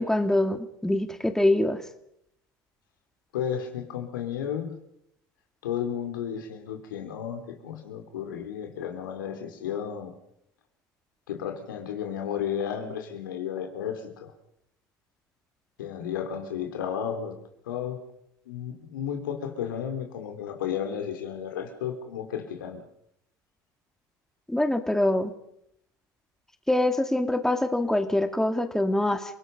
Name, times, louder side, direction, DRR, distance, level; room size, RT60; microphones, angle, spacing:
voice 1, 0.0-1.8 24.5-25.3 26.7-29.2, left 1 dB, 5° left, 7 dB, 2.3 m, -24 dB
voice 2, 3.3-4.8 5.6-10.2 11.3-14.3 15.8-17.4 17.6-18.0 18.4-22.8, left 8 dB, 80° left, 5 dB, 3.4 m, -33 dB
29.0 x 19.0 x 5.4 m, 0.78 s
hypercardioid pair, 70°, 11 cm